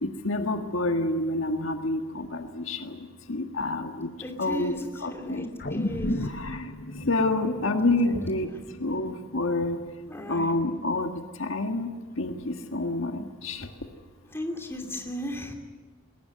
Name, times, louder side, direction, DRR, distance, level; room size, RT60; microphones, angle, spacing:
voice 1, 0.0-3.0 3.3-4.1 4.4-4.7 5.0-5.5 6.2-6.6 7.0-8.5 8.8-9.8 10.3-11.1 11.4-11.9 12.2-13.7, left 2 dB, 75° left, 5 dB, 1.7 m, -28 dB
voice 2, 4.2-4.8 5.1-6.1 8.0-8.2 8.5-8.6 10.1-10.5 14.3-15.5, equal, 10° left, 2 dB, 2.7 m, -35 dB
sound 1, 5.6-10.1 10.5-10.6, left 1 dB, 50° left, 1.2 m, -35 dB
20.5 x 18.5 x 9.4 m, 1.4 s
head